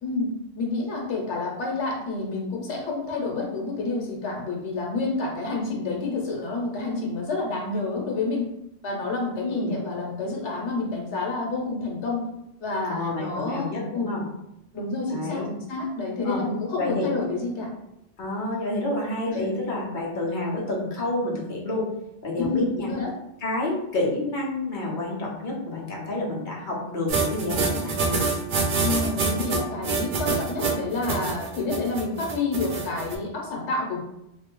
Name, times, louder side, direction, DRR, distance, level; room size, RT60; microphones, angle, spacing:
voice 1, 0.0-8.5 8.8-12.3 12.6-14.2 14.7-17.7 19.3-19.5 22.4-23.1 28.8-34.0, left 3 dB, 85° left, -1 dB, 1.1 m, -29 dB
voice 2, 9.4-9.7 12.9-14.2 15.1-15.5 16.2-16.4 16.8-17.1 18.2-21.9 22.2-22.9 23.4-28.2, left 2 dB, 50° left, -4 dB, 0.9 m, -29 dB
sound 1, 27.1-33.1, right 4 dB, 60° right, 0.6 m, -26 dB
3.2 x 2.1 x 3.0 m, 0.84 s
omnidirectional pair, 1.1 m